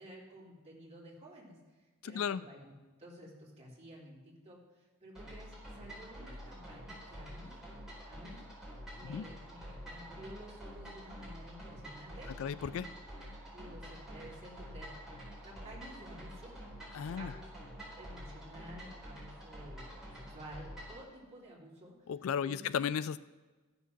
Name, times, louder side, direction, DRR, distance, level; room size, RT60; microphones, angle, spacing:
voice 1, 0.0-1.6 2.0-2.7 3.0-7.6 8.1-8.4 8.9-12.9 13.5-16.5 17.2-17.5 18.0-21.9 22.4-22.8, equal, 30° right, -5 dB, 3.3 m, -52 dB
voice 2, 2.0-2.4 9.0-9.3 12.4-12.9 16.9-17.3 22.1-23.2, left 7 dB, 65° left, 16 dB, 0.3 m, -35 dB
sound 1, 5.1-21.0, equal, ahead, 4.3 m, -48 dB
13.5 x 7.0 x 5.9 m, 1.3 s
head